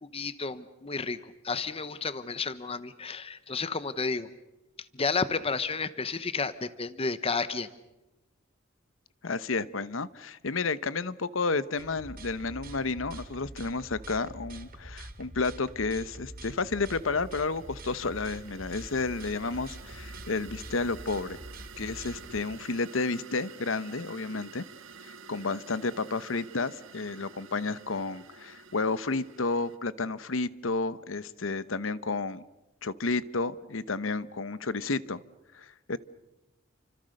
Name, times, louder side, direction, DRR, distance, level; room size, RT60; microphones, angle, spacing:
voice 1, 0.0-4.3 4.9-7.7, left 4 dB, 30° left, 14 dB, 0.9 m, -32 dB
voice 2, 9.2-21.4 21.8-24.6 25.3-32.4 32.8-35.2 35.5-36.0, left 3 dB, 80° left, 16 dB, 1.0 m, -31 dB
sound 1, 11.8-22.4, right 1 dB, 50° right, 2.6 m, -45 dB
sound 2, 16.4-29.8, right 5 dB, 90° right, 1.7 m, -50 dB
30.0 x 25.5 x 6.6 m, 0.99 s
head